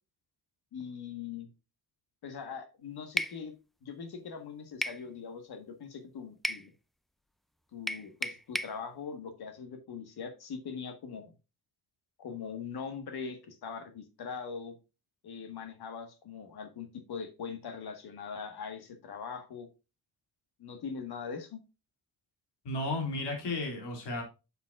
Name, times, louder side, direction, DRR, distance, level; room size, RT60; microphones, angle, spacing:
voice 1, 0.7-1.5 2.2-3.5 3.8-6.7 7.7-11.3 12.2-14.7 15.2-19.7 20.6-21.6, left 6 dB, 70° left, 7 dB, 1.6 m, -41 dB
sound 1, 3.2-3.4 4.8-5.0 6.4-6.7 7.9-8.8, equal, ahead, 0.3 m, -33 dB
voice 2, 22.6-24.2, left 2 dB, 85° left, 2 dB, 2.8 m, -33 dB
7.1 x 6.9 x 2.5 m, 0.29 s
cardioid pair, 75°, 40 cm